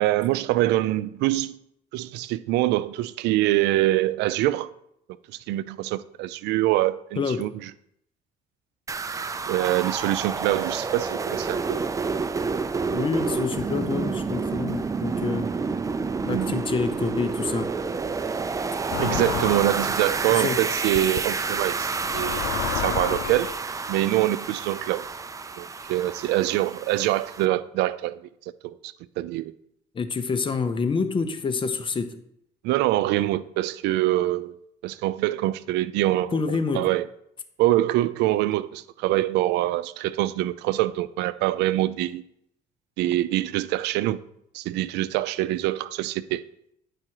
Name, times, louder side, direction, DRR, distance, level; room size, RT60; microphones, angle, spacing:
voice 1, 0.0-1.5 1.9-4.7 5.3-7.5 9.5-11.8 16.3-16.6 19.0-22.5 22.7-23.5 23.9-25.0 25.6-28.2 28.6-29.5 32.6-34.6 34.8-37.0 37.6-42.2 43.0-44.2 44.5-46.4, right 15 dB, 85° right, 0.4 m, -24 dB
voice 2, 7.2-7.5 12.9-15.5 16.2-17.7 20.3-20.6 29.9-32.2 36.3-36.9, left 5 dB, 30° left, 0.8 m, -27 dB
sound 1, 8.9-27.5, right 4 dB, 20° right, 0.4 m, -29 dB
sound 2, 18.9-19.9 20.9-21.2 22.0-23.6, left 13 dB, 80° left, 0.4 m, -31 dB
9.8 x 4.9 x 4.6 m
cardioid pair, 110°, 17 cm